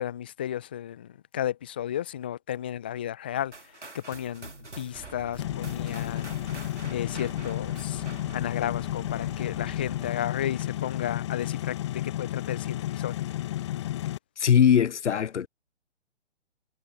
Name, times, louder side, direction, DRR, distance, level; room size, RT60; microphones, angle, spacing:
voice 1, 0.0-4.5 4.8-6.6 6.9-8.0 8.3-13.2, left 11 dB, 10° left, 0.5 m, -33 dB
sound 1, 3.5-8.6, right 2 dB, 85° right, 3.0 m, -46 dB
sound 2, 4.9-10.1, right 7 dB, 10° right, 1.8 m, -48 dB
sound 3, 5.4-14.2, left 13 dB, 25° left, 0.9 m, -32 dB
voice 2, 14.4-15.5, left 8 dB, 80° left, 0.5 m, -21 dB
figure-of-eight pair, 135°, 34 cm